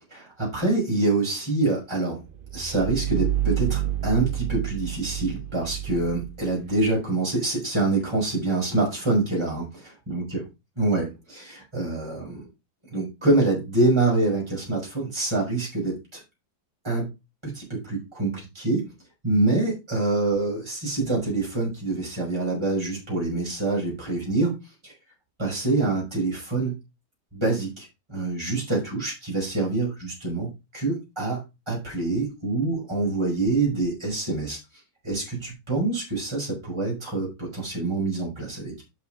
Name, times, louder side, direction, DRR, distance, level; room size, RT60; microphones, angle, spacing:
voice 1, 0.1-2.2 2.5-10.4 10.8-12.4 12.9-16.2 16.8-17.1 17.4-18.9 19.2-24.5 24.8-24.9 25.4-26.8 27.3-31.4 31.7-34.6 35.0-38.8, right 2 dB, 15° right, -4 dB, 5.5 m, -26 dB
sound 1, 2.3-7.0, right 12 dB, 45° right, 0.7 m, -29 dB
7.5 x 6.4 x 5.0 m, 0.25 s
omnidirectional pair, 1.7 m